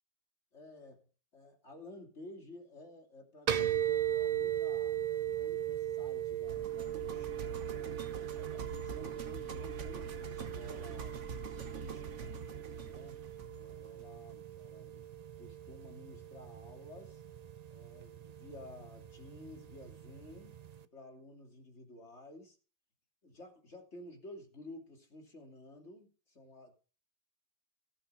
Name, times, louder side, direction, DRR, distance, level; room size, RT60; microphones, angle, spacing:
voice 1, 0.5-1.1 1.3-5.0 5.3-8.0 8.3-11.2 11.7-12.3 12.8-13.2 13.5-17.2 17.7-20.6 20.9-22.6 23.2-26.8, left 1 dB, 65° left, 3.2 m, -53 dB
sound 1, 3.5-20.8, right 11 dB, 45° right, 0.6 m, -39 dB
sound 2, 6.5-14.6, right 5 dB, 75° right, 1.4 m, -44 dB
15.5 x 7.3 x 5.5 m
omnidirectional pair, 1.2 m